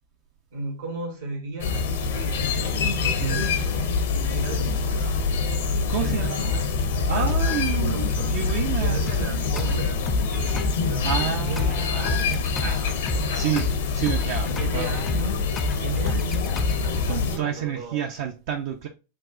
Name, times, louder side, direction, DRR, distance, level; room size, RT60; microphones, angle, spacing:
voice 1, 0.5-3.9 4.3-5.2 5.9-8.4 8.7-13.9 14.6-18.0, right 3 dB, 70° right, 1.3 m, -35 dB
sound 1, 1.6-17.4, left 5 dB, 60° left, 0.6 m, -25 dB
voice 2, 3.2-3.5 5.9-6.5 7.1-8.0 8.3-9.0 11.0-12.4 13.3-14.9 17.1-18.9, right 9 dB, 50° right, 0.4 m, -29 dB
sound 2, 5.7-10.8, equal, 85° left, 1.3 m, -41 dB
sound 3, 9.1-17.1, left 2 dB, 15° left, 0.4 m, -32 dB
5.9 x 2.3 x 2.3 m
figure-of-eight pair, 90°, 0 cm